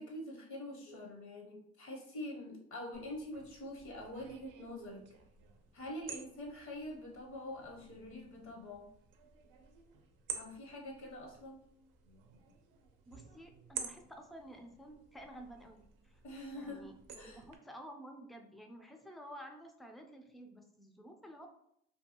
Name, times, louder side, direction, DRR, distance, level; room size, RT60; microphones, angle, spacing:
voice 1, 0.0-5.1 5.7-8.9 10.3-11.6 16.2-16.8 17.1-17.4, left 1 dB, 70° left, 0 dB, 0.7 m, -45 dB
sound 1, 2.9-17.6, right 7 dB, 85° right, 0.5 m, -51 dB
voice 2, 13.1-16.2 16.5-21.5, equal, ahead, 3 dB, 0.3 m, -52 dB
2.6 x 2.2 x 2.8 m, 0.72 s
cardioid pair, 90°, 30 cm